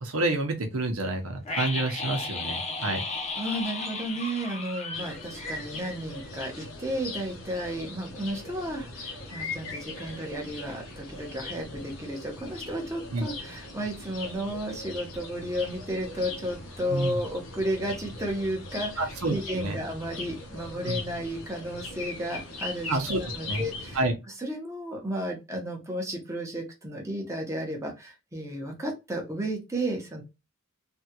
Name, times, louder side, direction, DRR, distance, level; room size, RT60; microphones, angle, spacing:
voice 1, 0.0-3.0 13.1-13.3 16.9-17.2 19.0-19.8 20.9-21.0 22.9-23.2 23.5-23.6 24.0-24.1, right 2 dB, 85° right, 0.9 m, -28 dB
sound 1, 1.5-6.3 6.5-6.6, left 3 dB, 30° left, 0.7 m, -34 dB
voice 2, 3.4-30.2, equal, 15° right, 0.9 m, -33 dB
sound 2, 4.9-24.0, left 3 dB, 75° left, 0.9 m, -40 dB
3.4 x 2.3 x 2.9 m
head